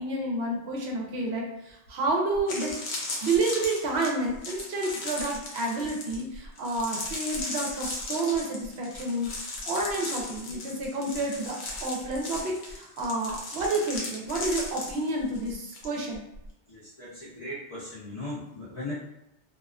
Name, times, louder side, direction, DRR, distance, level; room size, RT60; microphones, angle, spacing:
voice 1, 0.0-16.2, right 2 dB, 70° right, -1 dB, 0.8 m, -30 dB
sound 1, 1.9-2.0 2.3-15.9 16.1-16.5, left 2 dB, 70° left, 0.8 m, -37 dB
voice 2, 16.7-18.9, left 1 dB, 45° left, -9 dB, 0.4 m, -38 dB
2.3 x 2.3 x 2.3 m, 0.86 s
omnidirectional pair, 1.2 m